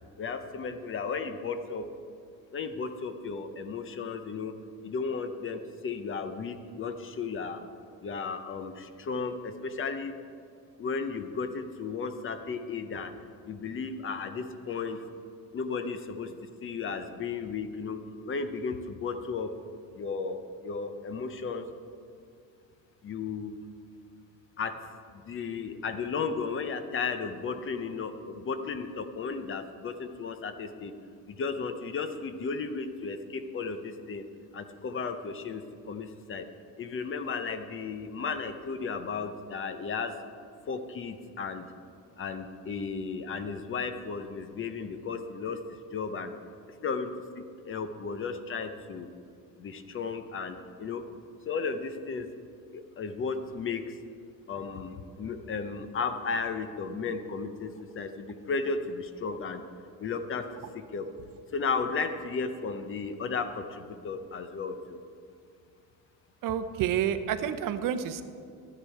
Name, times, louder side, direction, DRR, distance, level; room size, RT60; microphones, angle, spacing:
voice 1, 0.2-1.9 2.5-4.5 4.8-7.6 8.0-10.1 10.8-13.1 13.5-15.0 15.5-16.3 16.6-18.0 18.3-19.5 19.9-21.7 23.0-23.5 24.6-24.8 25.1-30.9 31.3-34.2 34.5-36.5 36.8-40.1 40.7-41.7 42.2-46.3 46.8-49.1 49.6-51.0 51.4-52.3 52.7-54.0 54.5-59.6 60.0-60.5 60.7-61.1 61.5-65.0, left 5 dB, 35° left, 9 dB, 0.7 m, -34 dB
voice 2, 66.4-68.2, right 9 dB, 60° right, 11 dB, 0.7 m, -29 dB
12.5 x 10.0 x 4.6 m, 2.3 s
cardioid pair, 140°, 38 cm